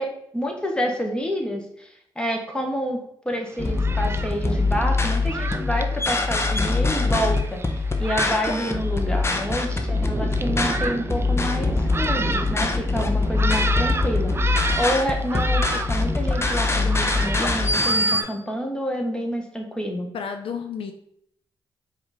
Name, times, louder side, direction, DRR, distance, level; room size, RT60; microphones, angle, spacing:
voice 1, 0.0-1.9 2.2-20.1, equal, 10° left, 2 dB, 1.1 m, -28 dB
Thunderstorm, 3.5-18.3, right 3 dB, 25° right, 0.4 m, -32 dB
sound 1, 3.6-18.2, left 3 dB, 25° left, 0.7 m, -23 dB
voice 2, 20.1-20.9, left 6 dB, 65° left, 6 dB, 0.4 m, -31 dB
4.6 x 2.7 x 4.0 m, 0.73 s
supercardioid pair, 55°, 10 cm